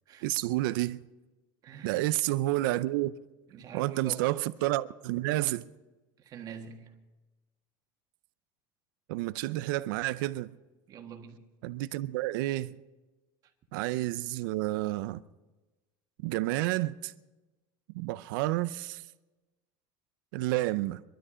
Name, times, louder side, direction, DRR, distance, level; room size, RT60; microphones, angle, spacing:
voice 1, 0.2-1.0 1.8-3.1 3.7-5.7 9.1-10.5 11.6-12.8 13.7-15.2 16.2-17.1 17.9-19.0 20.3-21.0, right 17 dB, 90° right, 0.6 m, -30 dB
voice 2, 1.6-2.1 3.5-4.3 6.2-7.0 10.9-11.5, right 7 dB, 35° right, 1.6 m, -45 dB
22.0 x 13.0 x 5.0 m
cardioid pair, 160°, 11 cm